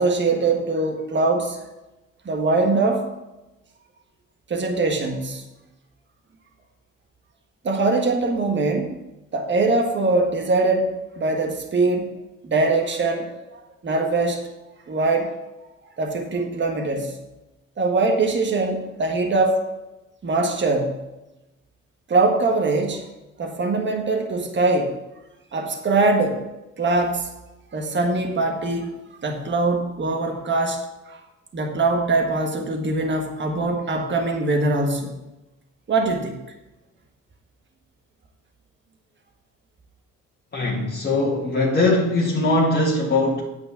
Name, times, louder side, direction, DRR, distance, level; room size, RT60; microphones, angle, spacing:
voice 1, 0.0-1.6 2.2-3.1 4.5-5.4 7.6-9.0 9.3-10.9 11.2-12.1 12.4-13.4 13.8-14.4 14.9-15.3 16.0-17.2 17.8-19.6 20.2-21.0 22.1-23.1 23.4-24.9 25.5-26.4 26.8-27.3 27.7-28.9 29.2-31.2 31.5-35.2 35.9-36.4, right 3 dB, 40° right, 3 dB, 1.5 m, -22 dB
voice 2, 40.5-43.4, left 2 dB, 35° left, -5 dB, 1.7 m, -21 dB
9.1 x 5.2 x 6.8 m, 1.0 s
cardioid pair, 90°, 30 cm